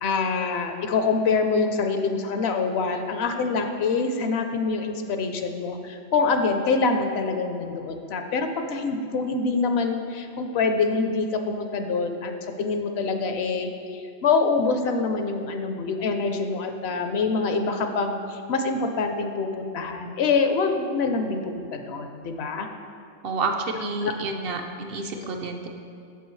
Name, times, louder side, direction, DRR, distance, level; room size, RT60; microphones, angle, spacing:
voice 1, 0.0-12.3 12.6-22.7 24.0-24.1, left 4 dB, 70° left, 6 dB, 0.8 m, -25 dB
voice 2, 23.2-25.7, right 3 dB, 65° right, 3 dB, 0.7 m, -29 dB
8.1 x 6.9 x 3.1 m, 2.4 s
omnidirectional pair, 1.1 m